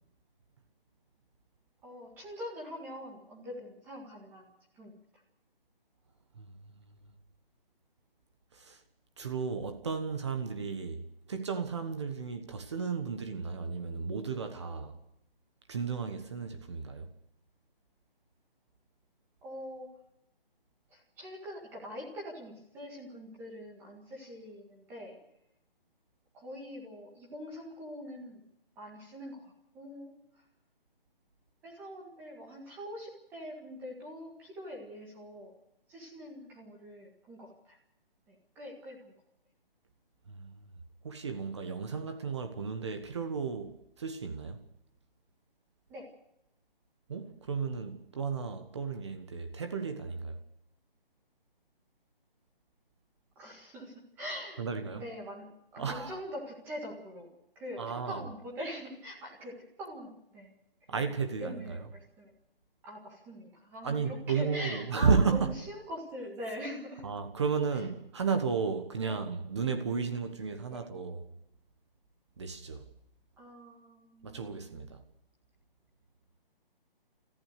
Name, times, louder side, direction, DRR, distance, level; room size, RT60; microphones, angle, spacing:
voice 1, 1.8-4.5 4.7-5.0 19.4-19.9 20.9-25.2 26.3-28.4 28.7-30.1 31.6-35.5 35.9-37.8 38.3-39.1 45.9-46.1 53.3-54.6 54.9-57.3 57.5-60.5 61.3-62.3 62.8-67.0 67.7-67.9 69.0-69.1 70.7-70.8 73.4-74.8, equal, 5° right, 1.8 m, -43 dB
voice 2, 6.4-7.0 8.5-8.8 9.2-15.0 15.7-17.1 40.3-40.7 41.0-44.6 47.1-50.4 54.6-55.0 55.8-56.2 57.8-58.2 60.9-61.9 63.8-65.6 67.0-71.2 72.4-72.8 74.2-75.0, right 5 dB, 30° right, 1.3 m, -33 dB
28.0 x 14.5 x 6.7 m
hypercardioid pair, 170°, 29 cm